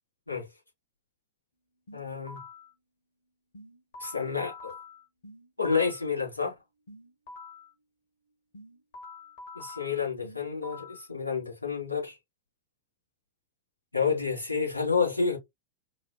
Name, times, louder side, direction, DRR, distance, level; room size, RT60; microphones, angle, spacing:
voice 1, 1.9-2.4 4.0-4.7 5.6-6.5 9.5-12.1 13.9-15.4, left 5 dB, 85° left, 2.5 m, -29 dB
sound 1, 1.9-2.7 3.5-6.1 6.9-7.7 8.5-11.1, left 3 dB, 55° left, 1.7 m, -46 dB
4.9 x 2.5 x 2.2 m
figure-of-eight pair, 90°, 0 cm